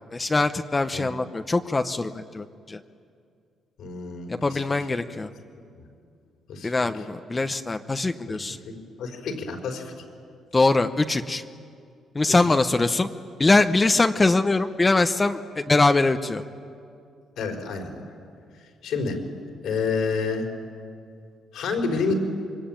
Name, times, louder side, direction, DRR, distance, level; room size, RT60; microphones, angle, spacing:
voice 1, 0.1-2.8 4.3-5.3 6.6-8.6 10.5-11.4 12.1-13.1 13.4-16.4, left 3 dB, 25° left, 7 dB, 0.9 m, -22 dB
voice 2, 3.8-4.6 5.8-5.9 6.5-6.7 8.3-9.9 12.3-12.4 17.4-18.0 18.8-19.2 19.6-20.5 21.5-22.1, left 4 dB, 80° left, 2 dB, 4.8 m, -29 dB
26.0 x 23.0 x 9.1 m, 2.3 s
cardioid pair, 90°, 0 cm